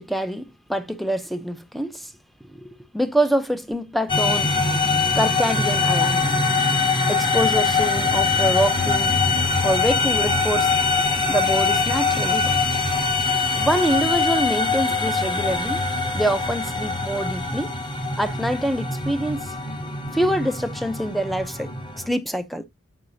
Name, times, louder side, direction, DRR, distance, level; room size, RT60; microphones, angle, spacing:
voice 1, 0.0-2.1 2.5-4.5 5.1-6.4 7.1-9.2 9.6-10.7 11.3-12.6 13.3-15.8 16.1-17.7 18.2-19.5 20.1-21.7 22.1-22.6, right 1 dB, ahead, 0.6 m, -25 dB
sound 1, 4.1-22.1, left 4 dB, 20° left, 1.2 m, -23 dB
7.9 x 5.8 x 2.6 m
head